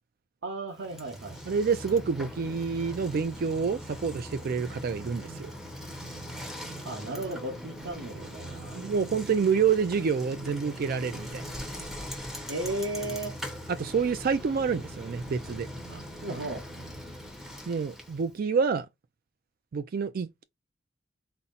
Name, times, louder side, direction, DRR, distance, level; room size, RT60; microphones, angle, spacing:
voice 1, 0.4-1.4 6.8-8.8 12.5-13.4 15.9-16.6, right 1 dB, 80° right, 1.1 m, -35 dB
Bicycle, 0.8-18.3, equal, ahead, 1.0 m, -41 dB
voice 2, 1.5-5.5 8.7-11.4 13.8-15.7 17.7-18.9 19.7-20.4, right 6 dB, 50° right, 0.4 m, -28 dB
4.1 x 2.1 x 3.9 m
head